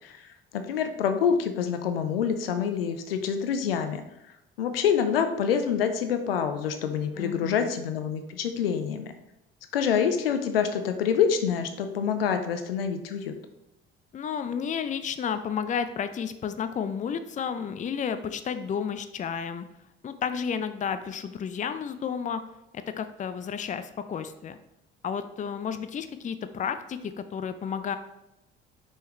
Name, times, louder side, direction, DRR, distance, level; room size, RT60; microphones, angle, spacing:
voice 1, 0.0-4.0 4.6-9.1 9.7-13.3, left 7 dB, 80° left, 8 dB, 0.6 m, -26 dB
voice 2, 7.2-7.7 14.1-19.6 20.0-22.4 22.7-24.6 25.0-28.0, left 7 dB, 25° left, 11 dB, 0.5 m, -32 dB
6.2 x 5.6 x 3.1 m, 0.91 s
figure-of-eight pair, 50°, 29 cm